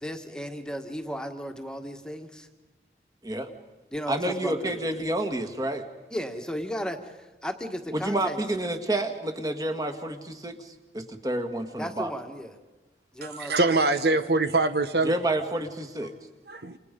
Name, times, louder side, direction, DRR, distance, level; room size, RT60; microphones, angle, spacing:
voice 1, 0.0-2.5 3.9-4.8 6.1-8.4 11.8-12.6 13.1-14.2, equal, 5° left, 4 dB, 1.7 m, -35 dB
voice 2, 4.1-5.8 7.9-12.1 14.3-14.4 15.0-16.1, right 1 dB, 20° right, 6 dB, 1.9 m, -29 dB
voice 3, 13.3-15.1 16.5-16.8, right 3 dB, 65° right, 10 dB, 1.2 m, -23 dB
29.0 x 28.0 x 5.3 m, 1.1 s
head